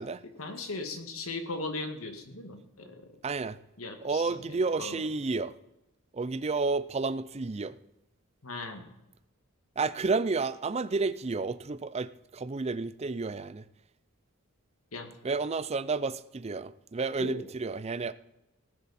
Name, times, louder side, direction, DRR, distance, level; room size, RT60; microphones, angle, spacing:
voice 1, 0.4-3.2 3.8-5.0 8.4-8.9 14.9-15.1 17.2-17.5, left 3 dB, 75° left, 5 dB, 1.9 m, -38 dB
voice 2, 3.2-3.6 4.0-5.6 6.1-7.8 9.8-13.6 15.2-18.1, right 4 dB, 30° right, 15 dB, 0.5 m, -31 dB
18.5 x 10.5 x 4.3 m, 0.91 s
head